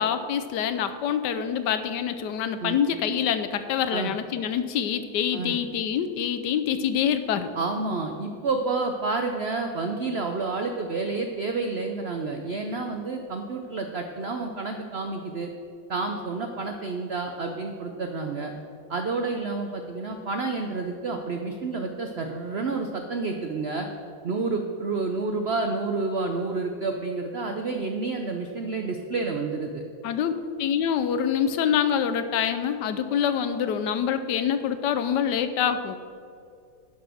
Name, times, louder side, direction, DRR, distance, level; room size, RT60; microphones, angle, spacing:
voice 1, 0.0-7.5 30.0-30.3 30.6-36.0, left 8 dB, 75° left, 10 dB, 1.2 m, -26 dB
voice 2, 7.6-15.5 15.9-18.5 18.9-23.9 24.2-29.8, right 3 dB, 90° right, 4 dB, 0.5 m, -29 dB
11.5 x 5.6 x 6.2 m, 2.4 s
omnidirectional pair, 2.0 m